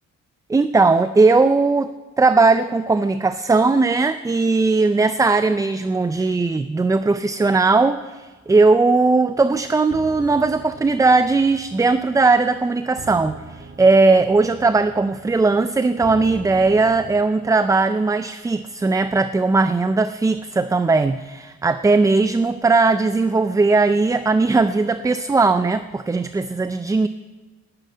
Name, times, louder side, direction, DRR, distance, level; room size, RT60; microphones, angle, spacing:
voice 1, 0.5-27.1, right 3 dB, 10° right, 12 dB, 0.4 m, -18 dB
sound 1, 9.5-17.2, right 4 dB, 35° right, 0.9 m, -42 dB
11.0 x 9.4 x 9.4 m, 1.3 s
cardioid pair, 90°, 30 cm